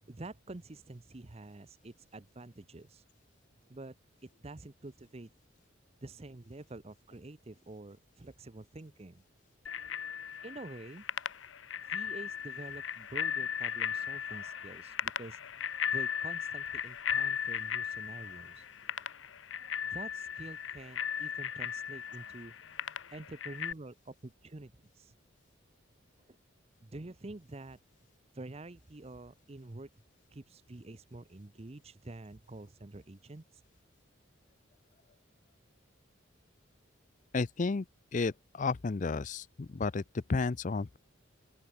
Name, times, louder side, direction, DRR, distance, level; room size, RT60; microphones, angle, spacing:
voice 1, 0.1-3.0 3.7-3.9 4.4-5.3 6.0-9.2 10.4-11.0 11.8-15.4 15.9-18.7 19.9-22.5 23.1-25.1 26.3-26.4 26.8-27.8 28.3-29.9 30.3-33.6, right 2 dB, 30° right, 0.7 m, -47 dB
Bicycle bell, 9.7-23.7, left 8 dB, 75° left, 0.9 m, -37 dB
voice 2, 37.3-37.8 38.1-41.0, left 4 dB, 40° left, 0.5 m, -32 dB
open air
head